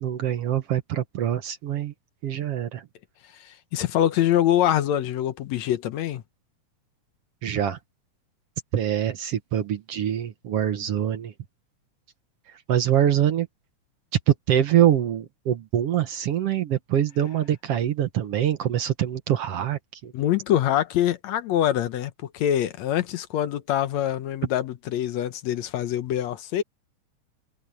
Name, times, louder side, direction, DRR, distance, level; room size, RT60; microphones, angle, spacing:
voice 1, 0.0-1.9 2.2-2.9 7.4-7.8 8.7-11.3 12.7-13.5 14.3-20.1, right 11 dB, 60° right, 1.9 m, -24 dB
voice 2, 3.4-6.2 20.1-26.6, left 11 dB, 75° left, 2.1 m, -24 dB
omnidirectional pair, 3.4 m